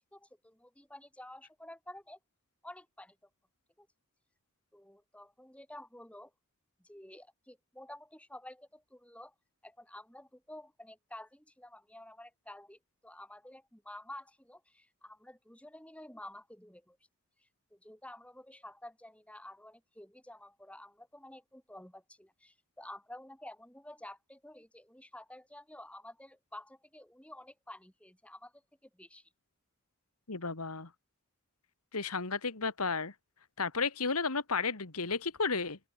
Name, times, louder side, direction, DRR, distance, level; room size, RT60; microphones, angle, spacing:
voice 1, 0.1-2.2 2.6-3.2 3.8-3.9 4.7-6.3 6.8-9.3 9.6-17.0 17.4-29.3, left 1 dB, 5° left, 6.8 m, -51 dB
voice 2, 30.3-30.9 31.9-33.1 33.6-35.8, left 4 dB, 85° left, 2.2 m, -33 dB
open air
head